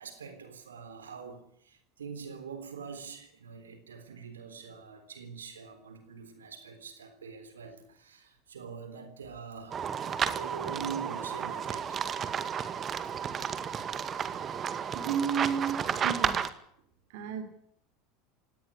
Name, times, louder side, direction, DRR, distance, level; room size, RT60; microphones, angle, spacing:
voice 1, 0.0-9.9 10.2-12.0 13.0-13.2, right 6 dB, 75° right, 3.7 m, -44 dB
sound 1, 9.7-16.5, right 7 dB, 30° right, 2.0 m, -32 dB
voice 2, 14.9-16.4 17.1-17.4, right 7 dB, 60° right, 3.2 m, -32 dB
18.5 x 18.0 x 9.8 m
figure-of-eight pair, 75°, 0 cm